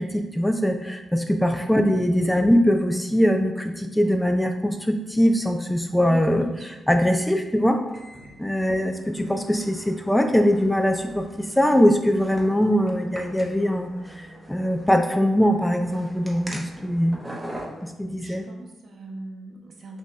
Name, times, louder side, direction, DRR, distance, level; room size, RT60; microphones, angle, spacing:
voice 1, 0.0-7.8 8.4-17.2 17.8-18.5, equal, 5° left, 6 dB, 0.3 m, -22 dB
voice 2, 5.8-6.7 7.2-7.3 8.6-9.0 18.2-20.0, right 3 dB, 60° right, 1 dB, 0.7 m, -42 dB
sound 1, 7.1-17.9, right 1 dB, 15° right, 0.7 m, -42 dB
5.8 x 2.8 x 2.2 m, 1.0 s
cardioid pair, 80°, 0 cm